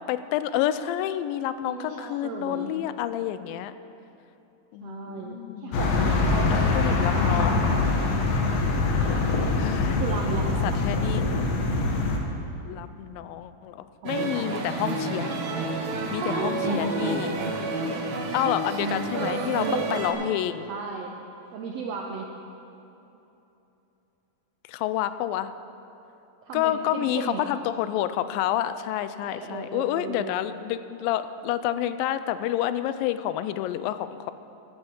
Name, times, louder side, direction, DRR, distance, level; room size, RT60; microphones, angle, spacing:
voice 1, 0.1-3.7 4.7-5.9 6.5-7.6 9.6-10.0 10.6-11.3 12.6-15.4 16.1-17.4 18.3-20.7 24.7-25.5 26.5-34.3, left 12 dB, 85° left, 12 dB, 2.3 m, -29 dB
voice 2, 1.6-2.7 4.8-7.5 10.0-10.8 14.0-14.6 16.2-17.6 17.9-18.0 19.1-20.3 20.7-21.1 21.5-22.3 26.4-27.5 29.2-30.3, right 5 dB, 85° right, 2 dB, 1.4 m, -34 dB
sound 1, 5.7-12.2, left 3 dB, 60° left, 2.0 m, -24 dB
sound 2, 14.0-20.1, right 2 dB, 60° right, 1.3 m, -30 dB
14.5 x 13.0 x 4.5 m, 3.0 s
omnidirectional pair, 4.0 m